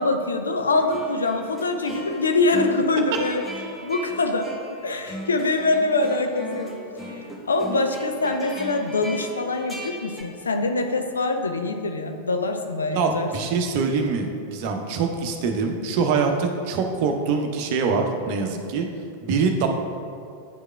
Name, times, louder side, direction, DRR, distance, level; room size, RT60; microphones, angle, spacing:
voice 1, 0.0-3.4 3.8-6.8 7.5-13.3, left 3 dB, 75° left, 6 dB, 0.5 m, -24 dB
sound 1, 0.7-10.2, right 1 dB, 10° left, 1.0 m, -38 dB
voice 2, 12.9-18.9 19.2-19.7, right 5 dB, 50° right, 3 dB, 0.7 m, -24 dB
9.8 x 4.9 x 2.2 m, 2.4 s
figure-of-eight pair, 90°, 0 cm